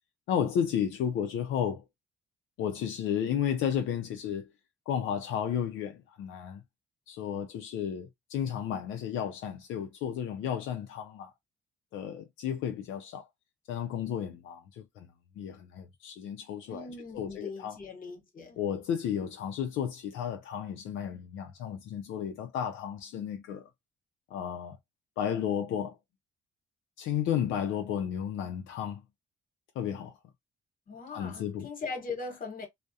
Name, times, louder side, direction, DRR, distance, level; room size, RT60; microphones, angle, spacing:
voice 1, 0.3-1.8 2.6-4.5 4.9-6.6 7.1-11.3 11.9-13.3 13.7-16.9 17.1-17.8 18.6-23.7 24.3-24.8 25.2-26.0 27.0-29.0 29.8-30.2 31.1-31.7, left 9 dB, 80° left, 0.4 m, -33 dB
voice 2, 16.7-18.6 30.9-32.7, left 4 dB, 45° left, 1.1 m, -40 dB
2.3 x 2.1 x 2.6 m
cardioid pair, 90°, 20 cm